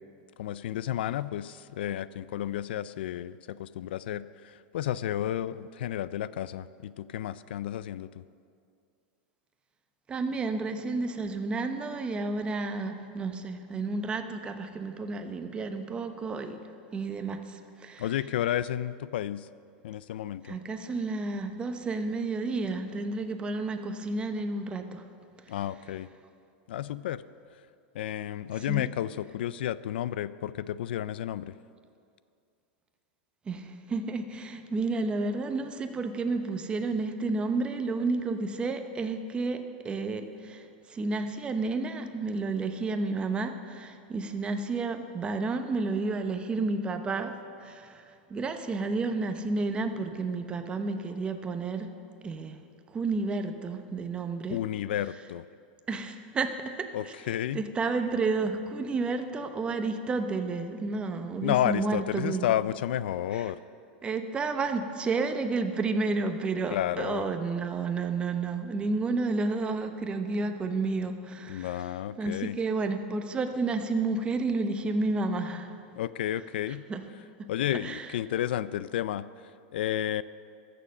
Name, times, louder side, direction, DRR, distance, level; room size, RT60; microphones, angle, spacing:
voice 1, 0.4-4.3 4.7-8.1 18.0-19.5 19.8-20.6 25.5-26.1 26.7-27.2 27.9-31.5 54.5-55.4 56.9-57.6 61.4-63.6 66.7-67.3 71.5-72.5 76.0-76.8 77.5-79.3 79.7-80.2, left 11 dB, 85° left, 17 dB, 0.4 m, -31 dB
voice 2, 10.1-16.6 16.9-18.2 20.4-25.0 25.5-25.6 28.5-28.9 33.5-47.3 47.6-51.9 52.2-52.6 52.9-54.6 55.9-62.5 63.3-63.5 64.0-71.9 72.2-75.7 76.3-77.0 77.7-78.1, right 3 dB, 20° right, 7 dB, 0.8 m, -31 dB
14.0 x 6.7 x 6.5 m, 2.4 s
supercardioid pair, 135°, 5 cm